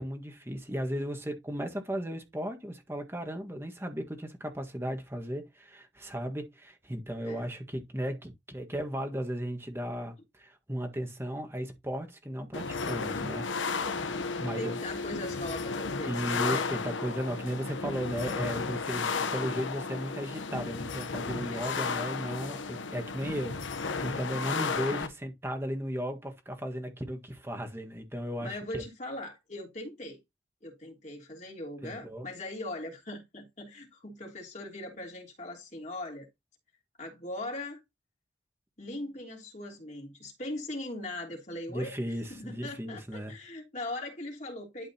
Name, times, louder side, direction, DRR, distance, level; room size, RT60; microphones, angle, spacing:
voice 1, 0.0-13.5 14.4-14.8 16.1-28.8 31.8-32.3 41.7-43.3, equal, 15° right, 1.5 m, -35 dB
sound 1, 12.5-25.1, left 4 dB, 90° left, 0.9 m, -34 dB
voice 2, 13.8-16.7 21.5-21.9 28.4-30.2 30.6-36.3 37.0-37.8 38.8-41.9 42.3-44.9, left 1 dB, 40° left, 3.2 m, -40 dB
12.0 x 5.1 x 2.9 m
head